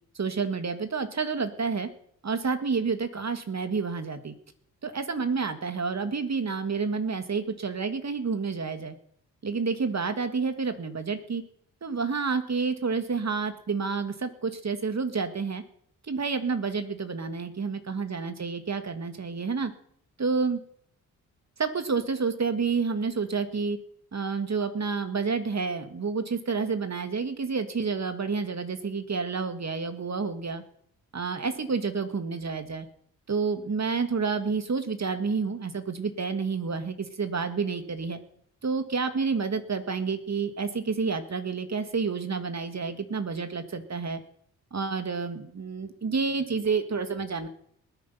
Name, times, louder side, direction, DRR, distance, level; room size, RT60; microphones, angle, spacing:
voice 1, 0.1-1.9 2.2-4.3 4.8-9.0 9.4-11.4 11.8-15.6 16.1-19.7 20.2-20.6 21.6-23.8 24.1-30.6 31.1-32.9 33.3-38.2 38.6-44.2 44.7-47.5, right 5 dB, 40° right, 9 dB, 2.3 m, -29 dB
20.0 x 9.2 x 5.9 m, 0.65 s
supercardioid pair, 45°, 39 cm